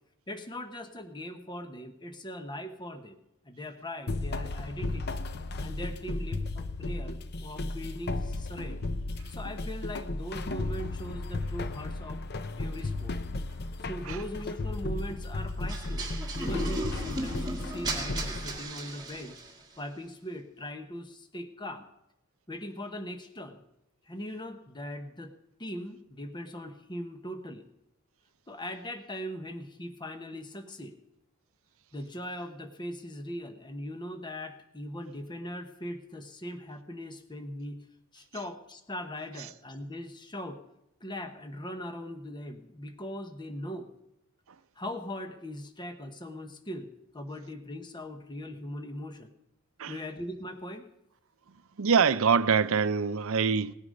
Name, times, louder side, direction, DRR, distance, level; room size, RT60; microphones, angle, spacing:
voice 1, 0.3-3.2 3.4-5.2 5.6-8.8 9.3-12.2 12.6-13.1 13.9-16.1 16.4-19.4 19.8-21.8 22.5-23.6 24.1-25.3 25.6-27.7 28.5-30.9 31.9-37.9 38.1-40.6 41.0-43.9 44.8-49.3 49.9-50.8, equal, 20° left, 1.0 m, -40 dB
sound 1, 4.1-18.6, left 2 dB, 50° left, 0.7 m, -34 dB
sound 2, 15.7-19.6, right 1 dB, 20° right, 2.2 m, -36 dB
voice 2, 51.8-53.7, right 6 dB, 65° right, 0.6 m, -24 dB
18.0 x 9.8 x 5.3 m
head